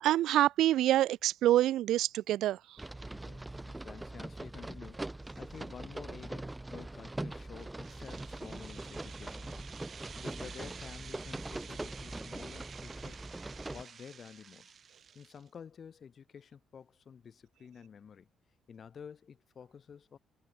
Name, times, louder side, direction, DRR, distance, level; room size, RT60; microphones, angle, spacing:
voice 1, 0.0-2.8, right 13 dB, 85° right, 0.7 m, -26 dB
sound 1, 2.8-13.8, right 2 dB, 15° right, 2.5 m, -42 dB
voice 2, 3.1-9.7 10.2-13.3 13.6-14.7 15.1-18.3 18.7-20.2, left 7 dB, 50° left, 3.3 m, -51 dB
sound 2, 7.6-15.5, right 7 dB, 50° right, 6.1 m, -51 dB
cardioid pair, 90°, 0 cm